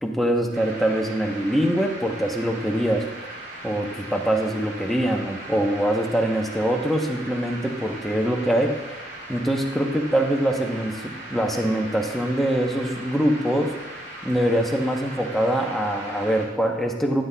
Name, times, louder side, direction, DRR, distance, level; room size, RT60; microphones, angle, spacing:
voice 1, 0.0-3.0 3.6-8.7 9.3-11.0 11.3-13.7 14.2-17.2, right 1 dB, ahead, 1 dB, 0.8 m, -23 dB
sound 1, 0.5-16.5, right 1 dB, 55° right, 2.8 m, -39 dB
12.0 x 9.0 x 2.2 m, 1.1 s
head